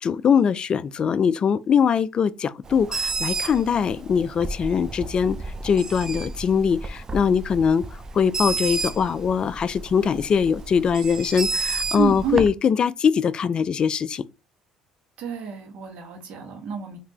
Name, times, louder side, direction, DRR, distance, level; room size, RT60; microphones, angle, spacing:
voice 1, 0.0-5.4 5.6-7.8 8.1-14.2, left 7 dB, 45° left, 0.3 m, -22 dB
Bird, 2.6-12.5, right 3 dB, 30° right, 0.5 m, -31 dB
voice 2, 11.9-12.4 15.2-17.0, right 9 dB, 70° right, 1.3 m, -29 dB
3.6 x 2.8 x 2.9 m
supercardioid pair, 80°, 2 cm